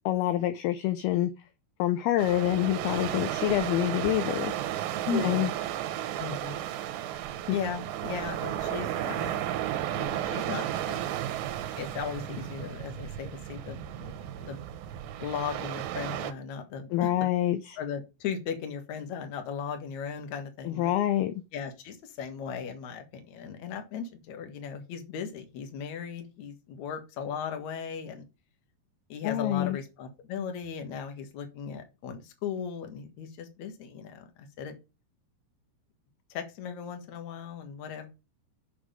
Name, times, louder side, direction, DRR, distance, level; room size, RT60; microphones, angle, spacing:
voice 1, 0.1-1.3 1.8-4.5 5.1-5.5 7.5-7.6 16.9-17.8 20.7-21.3 29.2-29.8, left 13 dB, 80° left, 2.3 m, -26 dB
sound 1, 2.2-16.3, right 12 dB, 80° right, 3.0 m, -33 dB
voice 2, 5.1-5.5 6.2-6.6 7.5-9.4 9.9-11.0 11.8-14.6 15.2-17.1 17.8-20.9 21.5-28.3 29.1-34.7 36.3-38.1, left 6 dB, 55° left, 2.2 m, -37 dB
7.2 x 6.6 x 5.2 m
omnidirectional pair, 5.0 m